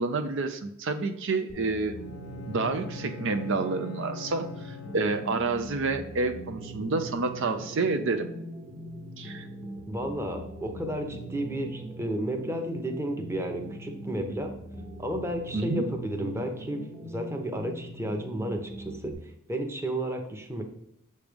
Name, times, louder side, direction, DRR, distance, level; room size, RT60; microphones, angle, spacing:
voice 1, 0.0-1.9 2.5-8.3 9.2-9.5 15.5-15.8, right 3 dB, 60° right, 7 dB, 0.6 m, -29 dB
sound 1, 1.5-19.1, right 1 dB, 35° right, 1.2 m, -41 dB
Bowed string instrument, 1.9-5.7, left 8 dB, 90° left, 0.5 m, -43 dB
voice 2, 9.9-14.5 15.0-19.1 19.5-20.6, right 1 dB, 10° right, 3 dB, 0.8 m, -32 dB
7.1 x 3.2 x 5.1 m, 0.78 s
head